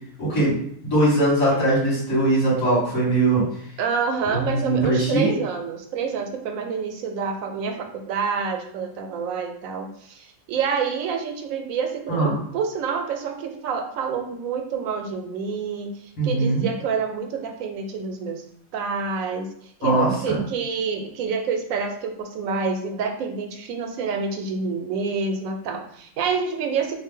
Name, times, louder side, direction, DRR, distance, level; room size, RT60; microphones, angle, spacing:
voice 1, 0.2-0.5 0.8-3.4 4.3-5.3 12.1-12.3 16.2-16.7 19.8-20.4, right 2 dB, 85° left, -6 dB, 2.1 m, -21 dB
voice 2, 3.8-15.9 16.2-18.4 18.7-19.5 19.8-27.0, right 5 dB, 90° right, 5 dB, 1.0 m, -27 dB
3.8 x 2.0 x 3.6 m, 0.65 s
omnidirectional pair, 1.4 m